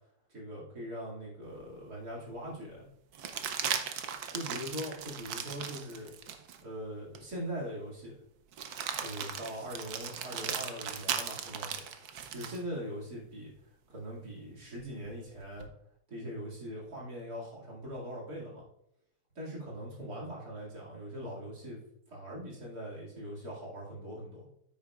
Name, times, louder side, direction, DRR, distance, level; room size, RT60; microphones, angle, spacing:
voice 1, 0.3-2.9 4.3-6.1 6.6-8.2 9.0-13.5 13.9-15.7 16.1-18.6 19.3-21.8 22.1-24.5, equal, 45° right, -5 dB, 2.8 m, -41 dB
sound 1, 1.6-1.7 3.1-6.6 7.1-7.3 8.5-12.6 14.8-15.7, right 8 dB, 65° right, 0.9 m, -37 dB
9.3 x 8.8 x 2.4 m, 0.76 s
omnidirectional pair, 2.4 m